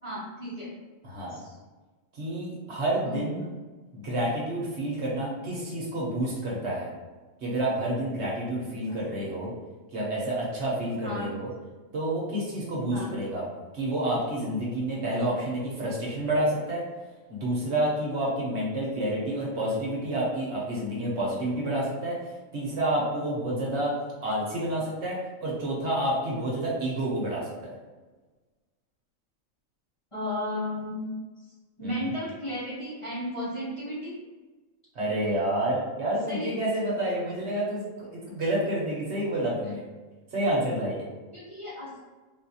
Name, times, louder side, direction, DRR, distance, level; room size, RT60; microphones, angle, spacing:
voice 1, 0.0-0.7 1.3-1.6 3.0-3.2 11.0-11.3 12.9-13.2 30.1-31.1 31.8-34.1 36.3-36.5 41.3-41.9, left 1 dB, 25° left, -10 dB, 0.9 m, -34 dB
voice 2, 1.0-1.4 2.1-3.5 3.9-6.9 7.4-9.5 9.9-11.5 11.9-13.4 13.7-16.8 17.3-23.9 24.2-27.5 31.8-32.1 34.9-39.8 40.3-41.0, right 1 dB, 60° right, -5 dB, 1.1 m, -29 dB
4.0 x 2.4 x 2.8 m, 1.3 s
omnidirectional pair, 1.4 m